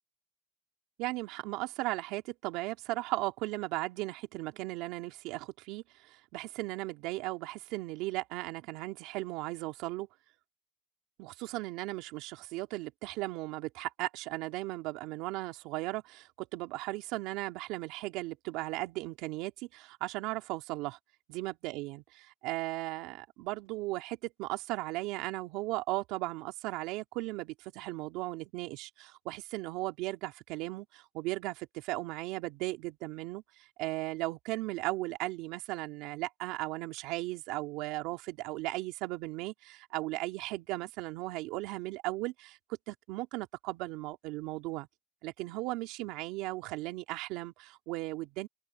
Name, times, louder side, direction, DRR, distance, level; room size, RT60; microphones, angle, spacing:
voice 1, 1.0-10.1 11.2-21.0 21.3-42.6 42.9-44.9 45.2-48.5, right 19 dB, 75° right, 2.8 m, -37 dB
open air
supercardioid pair, 115°, 0 cm